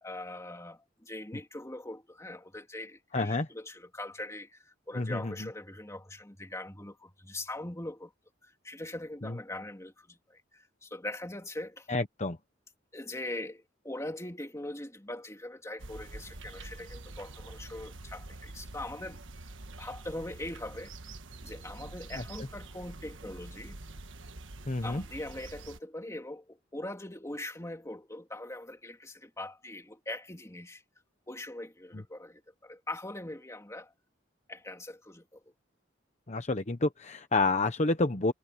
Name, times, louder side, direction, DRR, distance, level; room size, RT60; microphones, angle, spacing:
voice 1, 0.0-8.1 8.4-11.9 12.9-19.2 19.8-20.9 21.4-23.8 24.8-30.8 31.3-33.9 34.5-35.4, left 1 dB, 15° left, 2.5 m, -41 dB
voice 2, 3.1-3.5 4.9-5.3 9.2-9.4 11.9-12.4 24.7-25.0 31.9-32.0 36.3-38.3, left 2 dB, 40° left, 1.0 m, -29 dB
sound 1, 15.8-25.8, right 2 dB, 85° right, 1.4 m, -46 dB
head